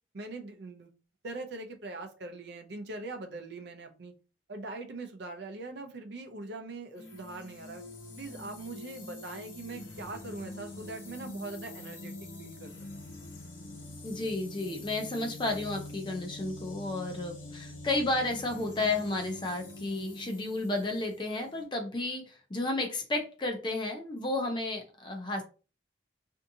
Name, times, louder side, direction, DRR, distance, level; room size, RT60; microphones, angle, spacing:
voice 1, 0.1-0.9 1.2-4.1 4.5-7.8 8.2-12.7, right 2 dB, 60° right, 5 dB, 0.5 m, -42 dB
sound 1, 6.9-21.6, left 2 dB, 85° left, 0.8 m, -45 dB
voice 2, 14.0-25.4, left 2 dB, 25° left, 3 dB, 0.5 m, -32 dB
2.6 x 2.4 x 2.6 m, 0.34 s
head